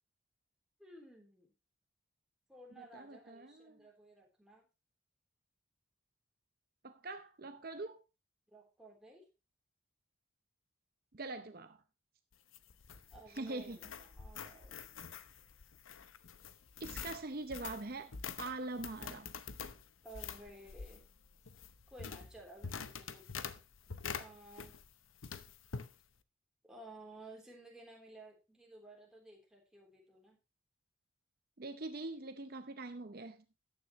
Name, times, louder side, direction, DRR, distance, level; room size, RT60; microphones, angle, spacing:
voice 1, 0.8-1.5 2.5-4.7 8.5-9.3 13.1-14.7 20.0-21.0 21.9-23.6 24.1-24.7 26.6-30.4, right 2 dB, 5° right, 3.5 m, -55 dB
voice 2, 2.8-3.8 6.8-8.0 11.1-11.8 13.3-13.8 16.8-19.3 31.6-33.4, right 2 dB, 45° right, 0.7 m, -43 dB
sound 1, 12.3-24.9 25.2-25.9, left 6 dB, 80° left, 0.9 m, -46 dB
13.5 x 9.9 x 3.1 m
head